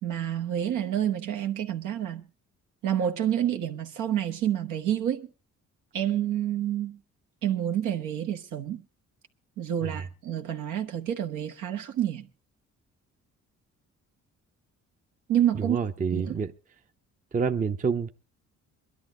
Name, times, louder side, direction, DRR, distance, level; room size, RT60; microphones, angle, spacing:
voice 1, 0.0-2.2 2.8-5.3 5.9-7.0 7.4-8.8 9.6-12.3 15.3-15.8 16.1-16.3, right 10 dB, 85° right, 1.2 m, -28 dB
voice 2, 15.5-16.5 17.3-18.1, right 5 dB, 25° right, 0.6 m, -28 dB
22.0 x 11.5 x 3.7 m
cardioid pair, 90°, 30 cm